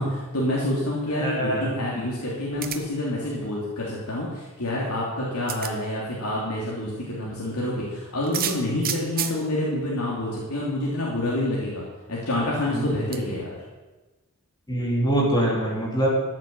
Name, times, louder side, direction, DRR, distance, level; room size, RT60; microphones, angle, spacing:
voice 1, 0.0-11.8 12.1-13.6, left 1 dB, 90° left, -5 dB, 3.0 m, -27 dB
voice 2, 1.2-1.6 12.7-12.8 14.7-16.1, right 1 dB, 20° left, -4 dB, 3.1 m, -23 dB
sound 1, 2.6-3.0 4.7-4.8 5.5-5.7 8.2-9.4 10.4-10.5 10.8-10.9 13.1-13.2, right 9 dB, 40° right, 1.1 m, -30 dB
14.0 x 7.5 x 7.2 m, 1.2 s
head